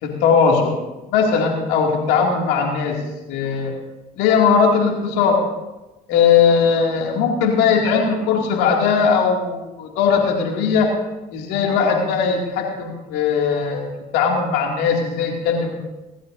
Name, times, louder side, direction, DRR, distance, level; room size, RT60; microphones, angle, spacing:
voice 1, 0.0-0.8 1.1-3.0 3.3-3.7 4.2-5.4 6.1-10.9 11.3-15.7, left 6 dB, 75° left, 0 dB, 2.4 m, -19 dB
21.0 x 13.5 x 2.7 m, 1.0 s
hypercardioid pair, 70°, 18 cm